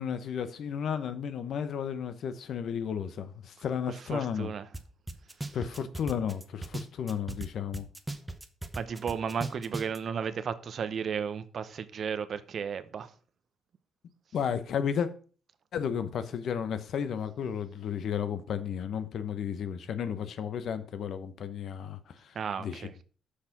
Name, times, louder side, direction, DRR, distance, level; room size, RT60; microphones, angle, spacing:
voice 1, 0.0-4.5 5.5-7.9 14.3-15.1 15.7-22.3 22.6-22.9, left 8 dB, 65° left, 0.9 m, -33 dB
voice 2, 3.9-4.7 8.7-13.1 22.3-23.0, right 7 dB, 55° right, 0.8 m, -34 dB
sound 1, 4.7-4.8 5.1-7.5 7.7-10.0, right 2 dB, 10° right, 0.9 m, -37 dB
6.6 x 5.7 x 5.9 m
cardioid pair, 90°, 0 cm